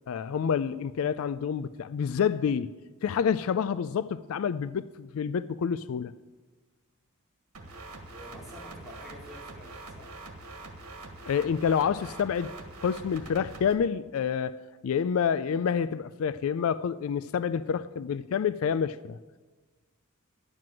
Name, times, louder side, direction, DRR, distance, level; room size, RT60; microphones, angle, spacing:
voice 1, 0.1-2.8 3.0-6.1 11.2-12.5 12.8-19.2, left 7 dB, 70° left, 0.3 m, -28 dB
sound 1, 7.5-13.7, right 2 dB, 85° right, 1.6 m, -44 dB
voice 2, 8.1-10.2, equal, ahead, 2.7 m, -48 dB
11.0 x 7.6 x 7.6 m
head